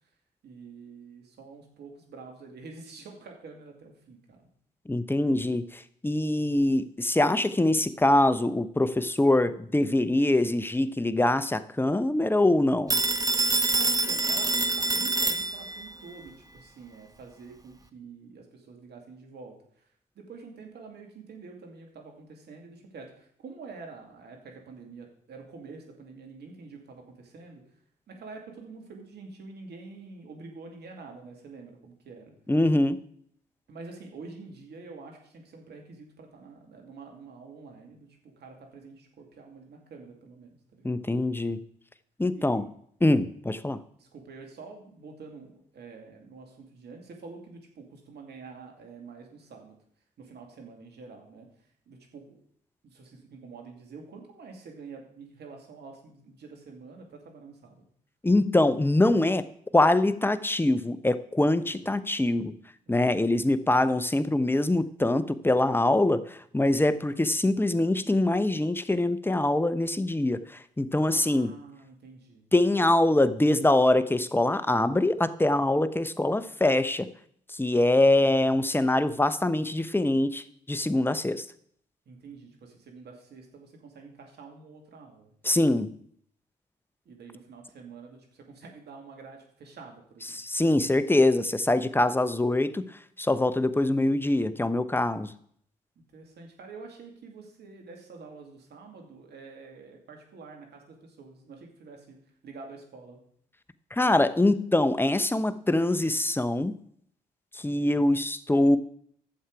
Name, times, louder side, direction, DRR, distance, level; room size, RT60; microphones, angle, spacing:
voice 1, 0.4-4.5 13.7-19.6 20.2-27.6 28.1-32.3 33.7-41.0 42.3-42.7 44.0-49.8 50.2-51.5 51.9-52.4 52.8-57.8 61.4-61.7 65.9-66.3 70.9-72.4 82.1-85.3 87.1-90.4 96.1-102.2 102.4-103.2, right 4 dB, 65° right, 2 dB, 2.5 m, -47 dB
voice 2, 4.9-13.0 32.5-33.0 40.8-41.6 42.2-42.7 43.0-43.8 58.2-59.5 59.7-62.5 62.9-70.4 70.8-71.6 72.5-77.1 77.5-81.5 85.4-85.9 90.3-92.9 93.2-95.3 103.9-106.7 107.5-108.8, left 1 dB, 10° left, 13 dB, 0.9 m, -24 dB
Telephone, 12.9-15.9, right 2 dB, 20° right, 1.0 m, -26 dB
11.5 x 7.4 x 4.8 m, 0.66 s
hypercardioid pair, 45°, 18 cm